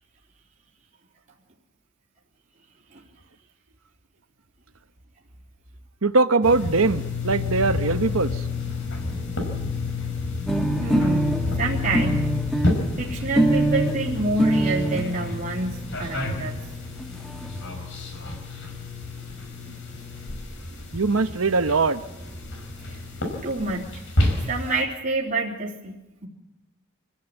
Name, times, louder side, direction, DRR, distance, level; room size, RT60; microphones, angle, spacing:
voice 1, 6.0-8.4 20.9-22.0, right 3 dB, 90° right, 10 dB, 1.1 m, -21 dB
sound 1, 6.4-24.8, left 3 dB, 65° left, 5.6 m, -30 dB
sound 2, 10.5-15.1 15.9-16.0 16.2-16.3 16.6-16.7 16.9-17.5, right 1 dB, ahead, 1.5 m, -24 dB
voice 2, 10.8-12.3 13.0-16.6 22.9-23.0 23.4-24.0 24.4-25.9, right 2 dB, 40° right, -4 dB, 3.4 m, -28 dB
26.5 x 15.5 x 8.3 m, 1.0 s
head